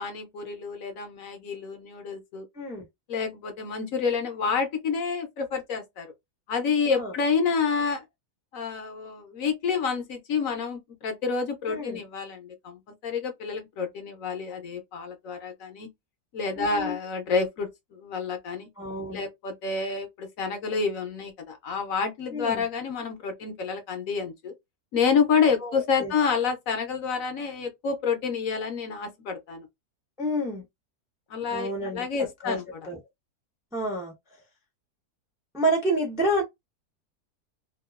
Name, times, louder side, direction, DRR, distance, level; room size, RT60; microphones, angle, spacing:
voice 1, 0.0-2.5 3.1-6.1 6.5-8.0 8.5-15.9 16.3-18.7 19.1-24.5 24.9-29.7 31.3-32.6, left 5 dB, 65° left, 1.0 m, -28 dB
voice 2, 11.7-12.0 16.6-17.0 18.8-19.2 22.3-22.6 25.6-25.7 26.0-26.1 30.2-30.6 31.5-32.1 32.4-32.6 32.9-33.0 33.7-34.1 35.5-36.4, right 1 dB, 5° right, 0.4 m, -28 dB
2.8 x 2.3 x 2.3 m
omnidirectional pair, 1.7 m